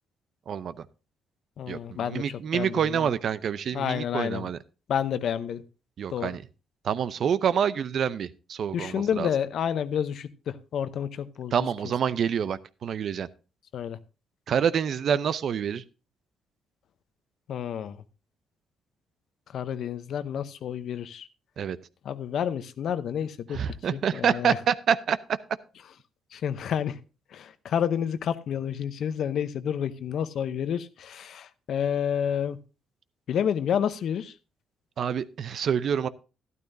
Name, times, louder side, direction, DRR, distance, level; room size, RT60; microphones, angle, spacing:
voice 1, 0.5-0.8 1.7-4.6 6.0-6.4 6.8-9.3 11.5-13.3 14.5-15.8 21.6-21.8 23.5-25.2 35.0-36.1, right 8 dB, 60° right, 15 dB, 0.6 m, -27 dB
voice 2, 1.6-3.1 3.7-4.5 4.9-5.6 6.1-6.4 8.7-11.7 13.7-14.0 17.5-18.0 19.5-21.3 22.0-23.6 23.9-24.6 26.3-27.0 27.3-32.6 33.3-34.3, left 8 dB, 65° left, 13 dB, 0.7 m, -29 dB
12.5 x 12.0 x 2.7 m, 0.32 s
cardioid pair, 90°, 0 cm